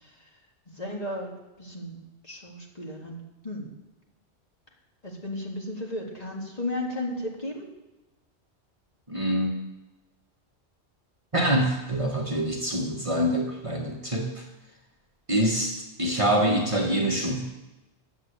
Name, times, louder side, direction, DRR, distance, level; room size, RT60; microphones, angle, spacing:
voice 1, 0.7-1.3 1.6-3.7 5.0-7.7, left 1 dB, 35° left, -2 dB, 2.3 m, -34 dB
voice 2, 9.1-9.5 11.3-14.4 15.3-17.4, right 1 dB, 30° right, -1 dB, 1.6 m, -25 dB
11.0 x 8.1 x 8.2 m, 1.1 s
omnidirectional pair, 1.2 m